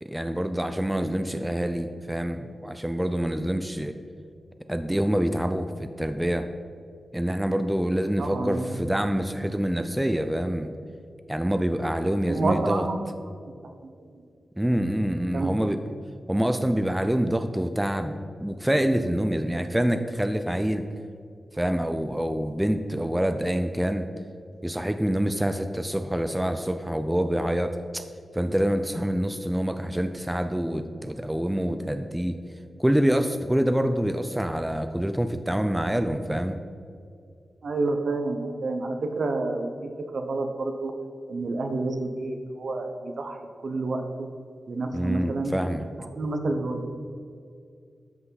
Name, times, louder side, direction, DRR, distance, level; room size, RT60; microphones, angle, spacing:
voice 1, 0.0-3.9 4.7-6.5 7.1-10.7 11.3-12.8 14.6-15.8 16.3-20.9 21.5-24.1 24.6-28.1 28.3-32.4 32.8-36.6 44.9-45.8, equal, 10° right, 8 dB, 0.5 m, -26 dB
voice 2, 8.2-8.8 12.3-13.4 13.8-14.2 15.3-15.5 37.6-40.9 41.3-43.4 43.6-44.3 44.7-45.5 46.0-46.9, right 3 dB, 65° right, 5 dB, 0.9 m, -29 dB
13.0 x 5.6 x 4.1 m, 2.3 s
wide cardioid pair, 85°, 0 cm